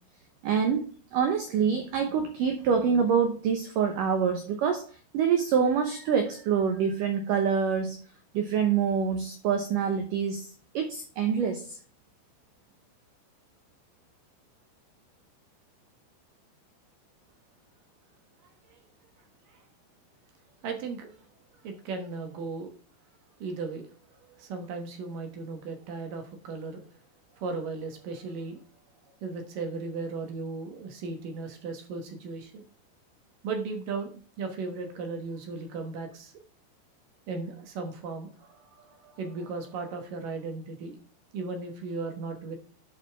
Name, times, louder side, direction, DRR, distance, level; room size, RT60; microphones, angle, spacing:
voice 1, 0.4-4.9 5.1-8.0 8.3-10.5 10.7-11.8, right 7 dB, 80° right, 1.9 m, -26 dB
voice 2, 20.6-21.1 21.6-22.7 23.4-23.9 24.2-26.8 27.3-28.6 29.2-32.7 33.4-36.3 37.3-41.0 41.3-42.6, right 4 dB, 65° right, 2.3 m, -36 dB
11.5 x 5.2 x 3.4 m
omnidirectional pair, 5.2 m